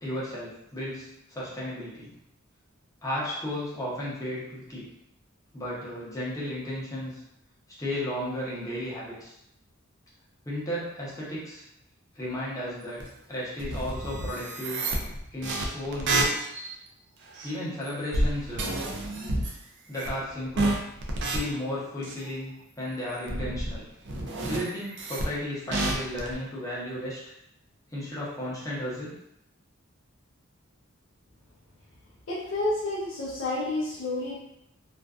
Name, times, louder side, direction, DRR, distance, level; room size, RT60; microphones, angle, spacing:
voice 1, 0.0-2.1 3.0-4.9 5.5-7.2 7.8-9.3 10.4-11.6 12.1-13.0 13.3-14.8 15.3-16.3 17.4-18.7 19.9-20.8 21.3-23.8 24.4-27.2 27.9-29.1, left 1 dB, 15° left, -7 dB, 0.7 m, -34 dB
sound 1, 13.0-13.1 13.6-16.8 17.3-17.5 17.9-19.6 19.9-20.3 20.6-21.4 22.0-22.3 23.1-23.8 24.1-25.3 25.7-26.3, right 2 dB, 60° right, 0.4 m, -29 dB
voice 2, 32.3-34.3, left 2 dB, 70° left, -6 dB, 0.5 m, -29 dB
2.4 x 2.2 x 2.3 m, 0.81 s
head